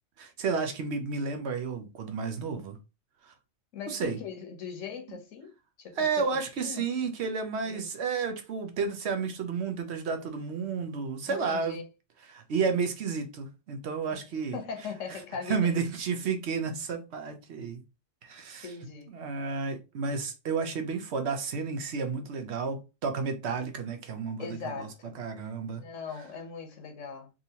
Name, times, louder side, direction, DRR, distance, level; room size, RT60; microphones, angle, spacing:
voice 1, 0.2-2.8 3.2-3.3 3.9-4.2 6.0-11.8 12.3-14.6 15.1-15.2 15.5-17.8 18.2-18.7 19.1-24.9 25.2-25.8, right 5 dB, 65° right, 0.9 m, -31 dB
voice 2, 3.7-5.5 5.8-6.3 6.6-6.9 7.6-7.9 11.3-11.9 14.1-14.2 14.5-15.8 18.6-19.1 24.4-25.2 25.7-27.3, left 6 dB, 90° left, 1.2 m, -40 dB
3.6 x 2.8 x 2.8 m
omnidirectional pair, 1.2 m